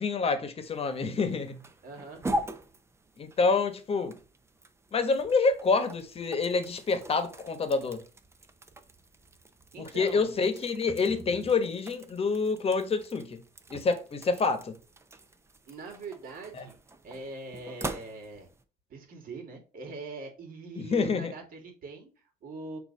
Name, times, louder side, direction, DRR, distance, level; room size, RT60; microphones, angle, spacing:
voice 1, 0.0-1.6 3.2-4.2 4.9-8.0 9.8-13.4 13.7-14.8 16.5-16.6 20.8-21.3, left 4 dB, 35° left, 1.2 m, -27 dB
sound 1, 0.6-18.6, right 1 dB, 15° right, 0.7 m, -42 dB
voice 2, 1.8-2.2 9.7-10.4 15.7-16.8 17.0-18.5 18.9-22.8, right 3 dB, 60° right, 2.4 m, -42 dB
6.6 x 2.9 x 5.4 m
cardioid pair, 110°, 17 cm